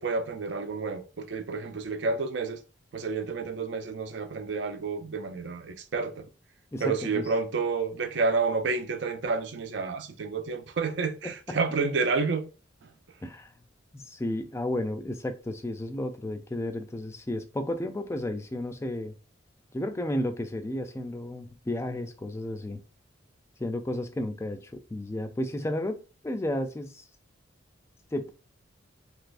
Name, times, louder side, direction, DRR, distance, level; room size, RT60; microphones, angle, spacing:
voice 1, 0.0-2.6 2.9-6.3 6.8-12.5, right 4 dB, 60° right, 0.4 m, -30 dB
voice 2, 6.7-7.2 11.2-11.6 13.2-13.5 13.9-19.1 19.7-22.8 23.6-27.0 28.1-28.3, left 1 dB, 15° left, 0.3 m, -33 dB
3.3 x 3.0 x 2.5 m
head